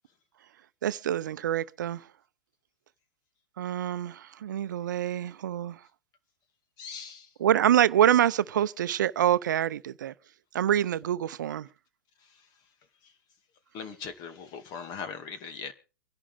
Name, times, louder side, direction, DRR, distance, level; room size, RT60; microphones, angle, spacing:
voice 1, 0.8-2.0 3.6-5.8 7.4-10.1 10.5-11.7, right 11 dB, 70° right, 0.7 m, -26 dB
voice 2, 6.8-7.3 13.0-13.1 13.7-15.7, left 6 dB, 40° left, 2.3 m, -40 dB
25.0 x 11.0 x 3.5 m
hypercardioid pair, 105°, 11 cm